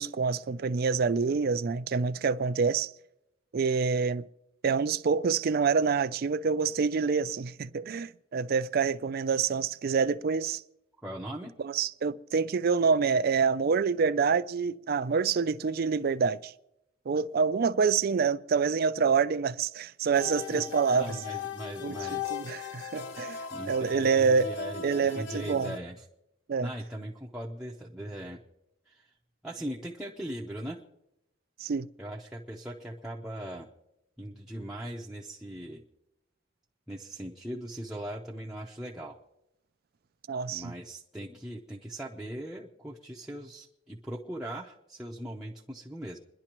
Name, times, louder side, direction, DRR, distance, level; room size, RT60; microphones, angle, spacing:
voice 1, 0.0-2.9 3.5-4.2 4.6-10.6 11.6-16.5 17.1-21.2 21.8-22.0 22.3-23.4 23.7-24.5 24.8-25.7 26.5-26.7 31.6-31.9 40.3-40.7, right 5 dB, 50° right, 0.4 m, -27 dB
voice 2, 11.0-11.5 20.5-20.6 20.9-22.3 23.5-26.0 26.6-28.4 28.9-29.1 29.4-30.8 32.0-33.7 34.2-35.8 36.9-39.2 40.5-46.2, right 1 dB, 5° right, 0.6 m, -39 dB
sound 1, 20.1-25.8, left 6 dB, 65° left, 0.7 m, -38 dB
28.0 x 11.0 x 3.0 m
head